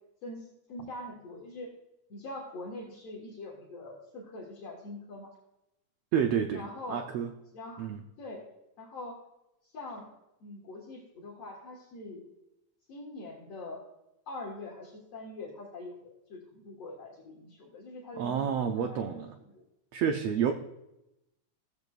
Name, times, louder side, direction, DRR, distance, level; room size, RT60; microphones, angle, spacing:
voice 1, 0.2-1.7 2.1-5.3 6.5-7.1 7.5-7.9 8.2-8.5 8.8-9.2 9.7-10.1 10.4-12.2 12.9-13.9 14.3-19.2 19.5-19.6 20.5-20.6, left 2 dB, 60° left, -4 dB, 2.5 m, -43 dB
voice 2, 6.1-6.6 6.9-7.3 7.8-8.0 18.2-19.4 19.9-20.5, right 8 dB, 75° right, 5 dB, 1.5 m, -29 dB
15.5 x 8.3 x 2.4 m, 0.89 s
omnidirectional pair, 3.4 m